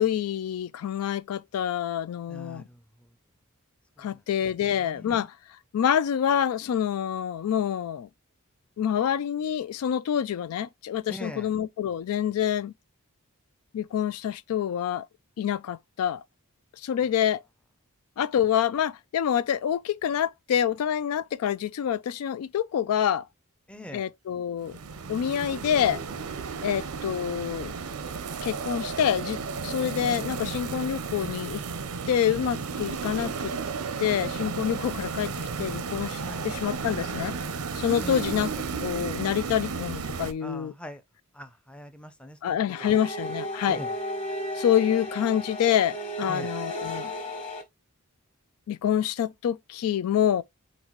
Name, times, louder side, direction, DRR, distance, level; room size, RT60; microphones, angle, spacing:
voice 1, 0.0-2.7 4.0-5.3 5.7-8.1 8.8-12.7 13.7-15.1 15.4-16.2 16.8-17.4 18.2-23.3 23.9-24.8 25.1-26.0 26.6-27.7 28.4-31.6 32.1-33.5 34.0-35.3 35.6-37.3 37.8-38.5 38.8-40.7 42.4-43.8 44.6-47.1 48.7-50.4, left 9 dB, 75° left, 0.3 m, -27 dB
voice 2, 2.3-3.1 4.0-4.2 4.7-5.3 11.1-11.5 23.7-24.1 26.8-26.9 36.2-36.4 38.0-38.4 40.4-41.0 41.3-42.9 43.7-44.0 46.3-46.6, equal, 5° left, 0.5 m, -42 dB
sound 1, 24.6-40.3, right 5 dB, 85° right, 0.7 m, -33 dB
sound 2, 42.7-47.6, equal, 30° left, 1.3 m, -34 dB
4.3 x 4.0 x 3.0 m
head